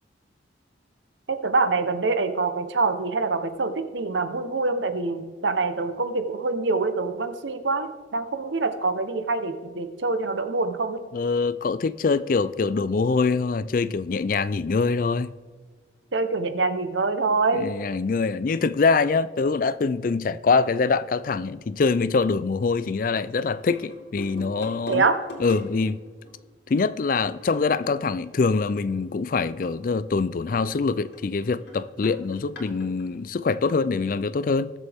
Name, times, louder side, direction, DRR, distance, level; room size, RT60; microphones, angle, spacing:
voice 1, 1.3-11.0 16.1-17.7 24.9-25.2, right 3 dB, 85° right, 1.0 m, -25 dB
voice 2, 11.1-15.3 17.5-25.1 25.4-26.0 26.7-34.7, left 4 dB, 50° left, 0.4 m, -24 dB
sound 1, 23.4-26.7 27.3-29.2 29.6-29.7 30.0-30.1 30.5-33.2, left 1 dB, 65° left, 2.9 m, -44 dB
20.5 x 7.3 x 3.5 m
head